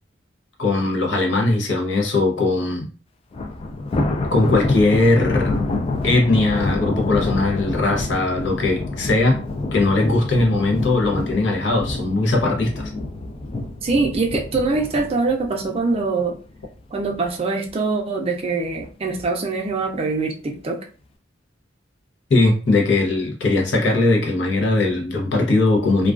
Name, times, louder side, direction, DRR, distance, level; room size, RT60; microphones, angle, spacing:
voice 1, 0.6-2.9 4.3-5.5 6.0-9.4 9.7-12.9 22.3-26.1, left 2 dB, 75° left, 1 dB, 0.7 m, -19 dB
Thunder, 3.3-16.6 17.0-17.3 17.7-17.8 18.7-19.2, left 2 dB, 30° left, 0.3 m, -27 dB
voice 2, 13.8-16.4 16.9-20.8, right 3 dB, 30° right, 2 dB, 0.4 m, -23 dB
2.3 x 2.3 x 2.3 m, 0.37 s
head